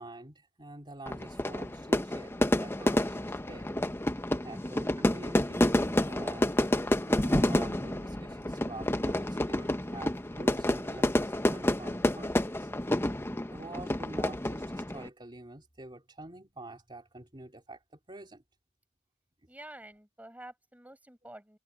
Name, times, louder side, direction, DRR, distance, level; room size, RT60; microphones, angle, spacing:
voice 1, 0.0-3.7 4.1-12.7 13.5-18.4, right 2 dB, 25° right, 3.0 m, -47 dB
Fire / Fireworks, 1.1-15.1, left 1 dB, 10° left, 0.8 m, -29 dB
voice 2, 4.5-4.8 19.5-21.6, right 1 dB, 10° right, 6.8 m, -49 dB
head